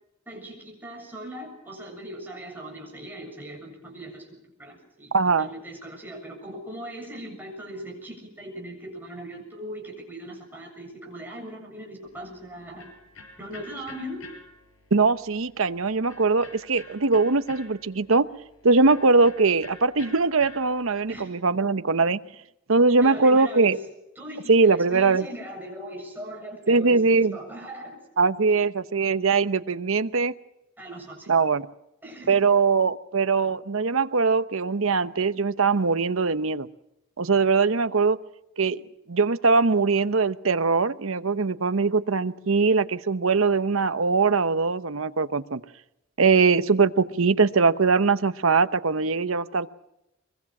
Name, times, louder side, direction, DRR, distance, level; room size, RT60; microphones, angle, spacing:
voice 1, 0.3-12.9 13.4-14.3 21.1-21.4 23.0-23.8 24.2-28.0 30.8-31.3 32.0-32.4, right 1 dB, 10° right, 1 dB, 7.5 m, -39 dB
voice 2, 5.1-5.5 14.9-18.3 18.6-22.2 22.7-23.8 24.5-25.3 26.7-27.4 28.2-30.3 31.3-31.7 32.3-36.7 37.2-38.2 38.6-38.8 39.1-45.6 46.2-49.7, right 4 dB, 75° right, 12 dB, 0.9 m, -21 dB
Electric guitar, 12.0-21.1, left 3 dB, 80° left, 5.5 m, -49 dB
23.5 x 23.0 x 6.1 m, 0.87 s
head